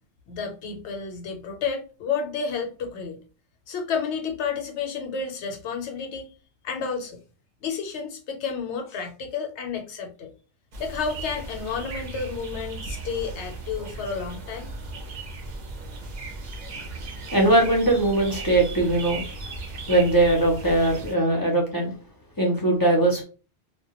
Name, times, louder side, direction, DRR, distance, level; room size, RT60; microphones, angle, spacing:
voice 1, 0.3-3.2 3.7-6.3 6.6-7.2 7.6-10.3 10.8-14.7, left 5 dB, 75° left, 3 dB, 0.9 m, -31 dB
sound 1, 10.7-21.1, right 2 dB, 50° right, 0.5 m, -37 dB
voice 2, 17.3-19.2 19.9-21.9 22.4-23.2, right 2 dB, 30° left, -1 dB, 0.4 m, -20 dB
2.1 x 2.1 x 2.8 m, 0.35 s
omnidirectional pair, 1.2 m